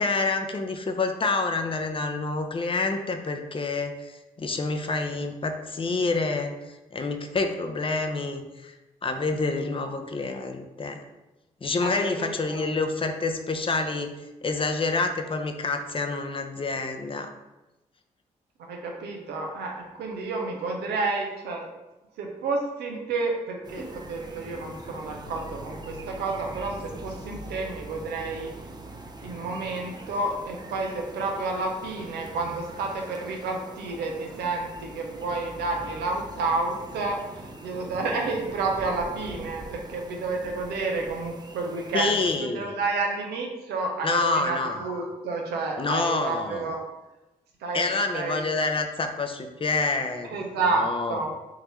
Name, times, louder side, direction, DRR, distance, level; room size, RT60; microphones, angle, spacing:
voice 1, 0.0-6.5 6.9-8.7 9.0-11.0 11.6-14.1 14.4-17.3 41.9-42.7 44.0-44.8 45.8-46.7 47.7-50.4 50.7-51.2, left 3 dB, 35° left, 6 dB, 0.6 m, -27 dB
voice 2, 11.8-12.6 18.7-21.7 22.2-28.5 29.2-42.1 42.4-46.8 47.6-48.4 50.3-51.3, right 3 dB, 80° right, 1 dB, 0.7 m, -30 dB
sound 1, 23.6-42.4, right 1 dB, 25° right, 0.6 m, -42 dB
3.6 x 2.8 x 3.1 m, 1.0 s
hypercardioid pair, 40°, 17 cm